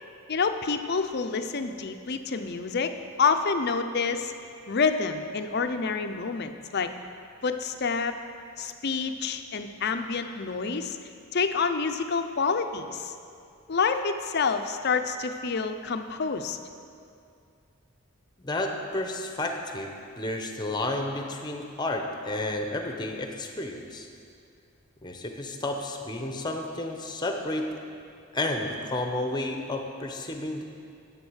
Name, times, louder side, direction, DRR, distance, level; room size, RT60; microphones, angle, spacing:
voice 1, 0.3-4.3 4.7-6.9 7.4-8.2 8.6-11.0 11.3-13.1 13.7-16.6, left 5 dB, 50° left, 8 dB, 0.6 m, -28 dB
voice 2, 18.4-24.1 25.0-27.8 28.3-30.6, left 2 dB, 20° left, 4 dB, 0.8 m, -31 dB
10.5 x 7.4 x 6.3 m, 2.4 s
head